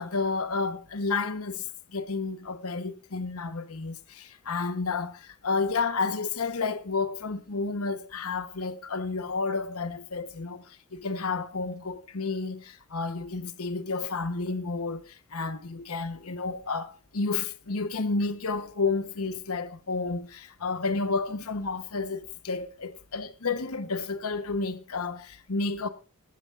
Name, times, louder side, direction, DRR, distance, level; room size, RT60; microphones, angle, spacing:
voice 1, 0.0-25.9, left 4 dB, 80° left, 1.0 m, -31 dB
20.0 x 12.5 x 2.4 m
head